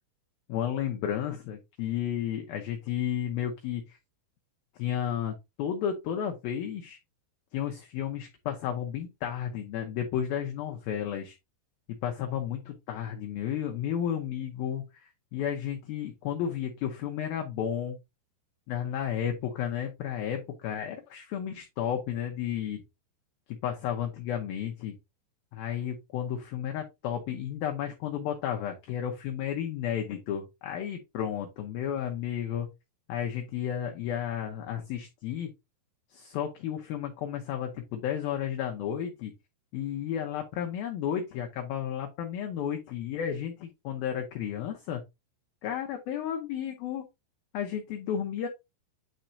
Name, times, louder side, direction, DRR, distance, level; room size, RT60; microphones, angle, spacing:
voice 1, 0.5-4.0 4.8-7.0 7.5-11.4 12.0-18.0 18.7-22.8 23.6-24.9 25.5-32.7 33.1-35.5 36.1-39.3 39.7-45.0 45.6-47.0 47.5-48.5, left 9 dB, 90° left, 3 dB, 2.0 m, -32 dB
9.4 x 4.4 x 2.6 m, 0.23 s
omnidirectional pair, 5.4 m